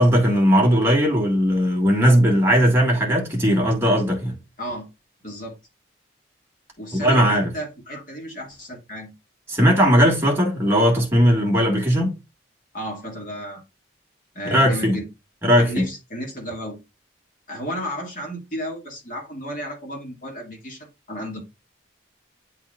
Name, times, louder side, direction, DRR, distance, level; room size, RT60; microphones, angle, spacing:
voice 1, 0.0-4.4 6.9-7.5 9.5-12.1 14.5-14.9 15.4-15.8, equal, 15° right, 1.6 m, -18 dB
voice 2, 5.2-5.6 6.8-9.1 12.7-13.6 14.4-15.1 15.6-16.8 17.5-21.4, equal, 45° left, 1.9 m, -33 dB
9.7 x 4.2 x 2.4 m
head